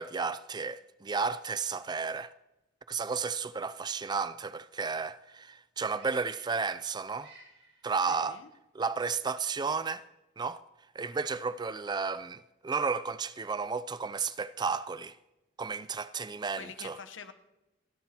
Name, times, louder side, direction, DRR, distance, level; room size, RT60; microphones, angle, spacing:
voice 1, 0.0-2.3 2.9-7.3 7.8-8.4 8.7-10.0 10.4-10.6 11.0-15.2 15.6-17.0, right 5 dB, 20° right, 0.4 m, -33 dB
sound 1, 2.4-16.1, right 3 dB, 65° right, 6.2 m, -64 dB
voice 2, 8.1-8.5 16.5-17.3, left 5 dB, 75° left, 1.1 m, -46 dB
29.0 x 11.5 x 3.0 m
head